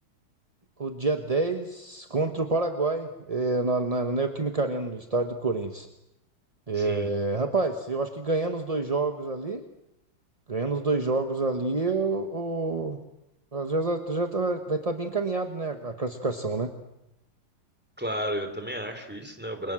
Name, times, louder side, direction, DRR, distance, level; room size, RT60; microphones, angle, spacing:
voice 1, 0.8-5.9 6.7-9.6 10.5-13.0 13.5-16.7, right 3 dB, 25° right, 6 dB, 1.0 m, -28 dB
voice 2, 6.7-7.1 18.0-19.7, equal, 5° right, 7 dB, 3.3 m, -33 dB
29.5 x 24.0 x 7.7 m, 0.88 s
omnidirectional pair, 2.2 m